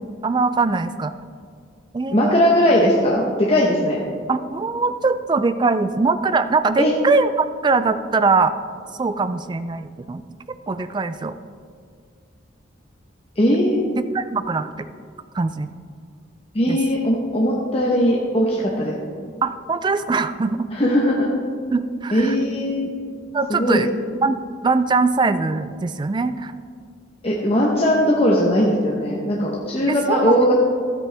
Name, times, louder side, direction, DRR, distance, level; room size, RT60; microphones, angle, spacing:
voice 1, 0.2-1.1 1.9-2.5 4.3-8.5 9.0-10.2 10.7-11.4 14.0-14.9 15.3-15.7 16.7-16.8 19.4-20.7 21.7-22.3 23.3-23.9 24.2-26.5 29.9-30.4, right 4 dB, 25° right, 12 dB, 0.3 m, -22 dB
voice 2, 2.1-4.0 6.8-6.9 13.4-13.8 16.5-18.9 20.7-21.3 22.1-22.9 23.5-23.9 27.2-30.5, equal, 30° left, -3 dB, 0.9 m, -19 dB
13.0 x 8.6 x 3.4 m, 2.1 s
head